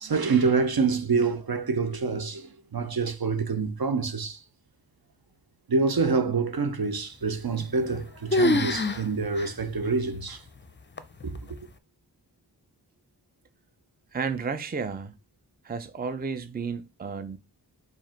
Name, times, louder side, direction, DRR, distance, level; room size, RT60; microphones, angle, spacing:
voice 1, 0.0-4.4 5.7-10.4 11.2-11.6, right 4 dB, 60° right, 0.8 m, -26 dB
sound 1, 7.5-8.0 8.3-9.0 9.4-9.5 10.1-10.2 11.0-11.4, left 2 dB, 25° left, 0.5 m, -25 dB
voice 2, 14.1-15.1 15.6-17.4, right 5 dB, 25° right, 0.5 m, -32 dB
4.7 x 2.6 x 4.3 m
wide cardioid pair, 55°, 42 cm